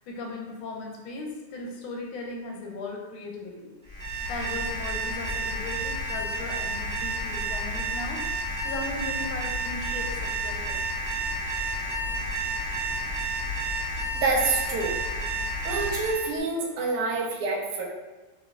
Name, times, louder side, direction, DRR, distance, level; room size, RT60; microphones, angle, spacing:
voice 1, 0.1-3.7 4.3-8.2 8.6-10.8, left 2 dB, 75° left, 0 dB, 1.3 m, -37 dB
Alarm, 3.9-16.3, right 1 dB, 45° right, 0.9 m, -30 dB
voice 2, 14.1-14.9 15.6-17.8, right 3 dB, 90° right, -1 dB, 1.6 m, -27 dB
3.3 x 3.2 x 2.4 m, 1.2 s
omnidirectional pair, 2.4 m